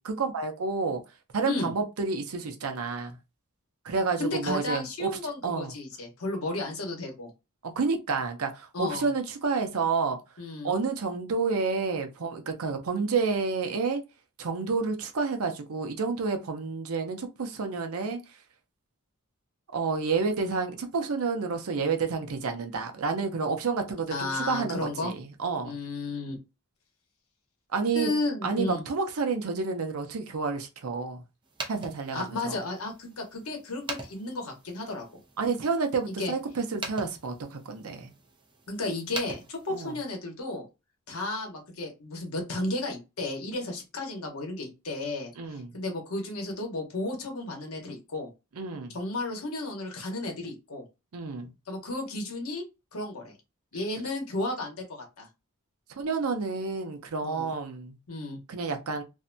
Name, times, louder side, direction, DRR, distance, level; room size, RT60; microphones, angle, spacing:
voice 1, 0.1-1.0 1.3-3.2 3.8-5.7 7.6-10.2 10.6-14.0 14.4-18.2 19.7-25.8 27.7-28.1 28.4-31.2 31.7-32.6 35.4-38.1 39.7-40.0 45.4-45.7 48.6-49.0 51.1-51.5 56.0-58.0 58.5-59.0, right 4 dB, 90° right, 0.6 m, -30 dB
voice 2, 4.2-7.3 8.7-9.1 10.4-10.7 24.1-25.1 25.6-26.3 27.9-28.8 32.1-35.2 36.1-36.3 38.7-40.6 41.1-48.3 48.9-50.8 51.7-52.6 52.9-53.3 53.7-55.3 57.2-57.5 58.1-58.4, left 2 dB, 85° left, 0.9 m, -33 dB
sound 1, 31.4-40.2, right 3 dB, 20° right, 0.5 m, -44 dB
2.6 x 2.2 x 2.6 m
head